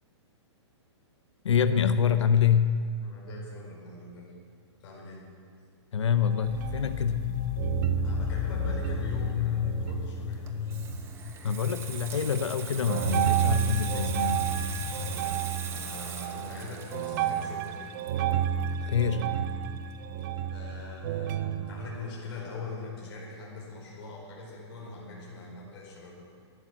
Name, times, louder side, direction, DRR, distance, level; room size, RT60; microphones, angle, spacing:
voice 1, 1.4-2.8 5.9-7.4 11.4-14.4 18.9-19.4, left 7 dB, 85° left, 11 dB, 0.8 m, -26 dB
voice 2, 3.0-4.3 4.8-5.3 8.0-10.5 15.0-15.4 15.7-18.0 20.5-26.3, left 3 dB, 55° left, -3 dB, 4.7 m, -42 dB
sound 1, 6.2-7.3 7.6-11.3 11.7-12.2 12.9-22.0, right 8 dB, 40° right, 0.8 m, -31 dB
sound 2, 6.5-15.4, left 11 dB, 30° left, 0.4 m, -35 dB
Water tap faucet / Sink (filling or washing), 10.3-19.6 19.9-20.2, right 7 dB, 15° right, 0.9 m, -41 dB
12.0 x 12.0 x 7.3 m, 2.1 s
hypercardioid pair, 150°, 15 cm